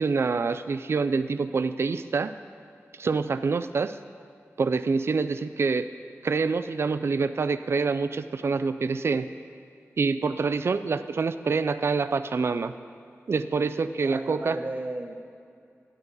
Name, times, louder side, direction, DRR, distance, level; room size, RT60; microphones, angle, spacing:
voice 1, 0.0-2.3 3.0-4.0 4.6-5.9 6.2-9.3 10.0-12.7 13.3-14.6, right 4 dB, 55° right, 12 dB, 0.3 m, -26 dB
voice 2, 14.0-15.1, right 2 dB, 35° right, 3 dB, 0.9 m, -35 dB
11.0 x 8.8 x 4.0 m, 2.4 s
wide cardioid pair, 100°, 5 cm